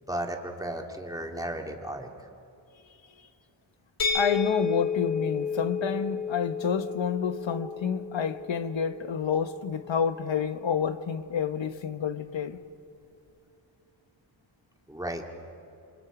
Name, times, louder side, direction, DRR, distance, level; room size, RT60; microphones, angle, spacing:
voice 1, 0.1-2.1 7.5-7.6 14.9-15.2, right 1 dB, 5° right, 2.1 m, -34 dB
sound 1, 4.0-9.8, left 6 dB, 45° left, 3.8 m, -32 dB
voice 2, 4.1-12.6, left 7 dB, 65° left, 1.2 m, -29 dB
28.0 x 27.5 x 5.0 m
wide cardioid pair, 130°, 48 cm